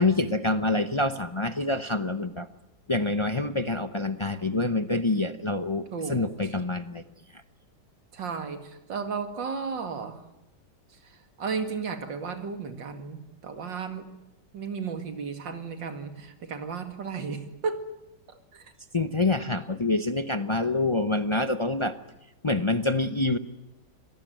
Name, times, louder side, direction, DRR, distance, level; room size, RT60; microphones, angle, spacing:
voice 1, 0.0-2.5 2.9-7.0 18.9-22.0 22.4-23.4, left 2 dB, 35° left, 10 dB, 0.4 m, -26 dB
voice 2, 5.9-6.5 8.1-10.2 11.4-14.1 14.5-17.9 18.5-18.6, right 5 dB, 90° right, 8 dB, 2.8 m, -34 dB
26.0 x 18.0 x 9.2 m, 0.98 s
omnidirectional pair, 1.9 m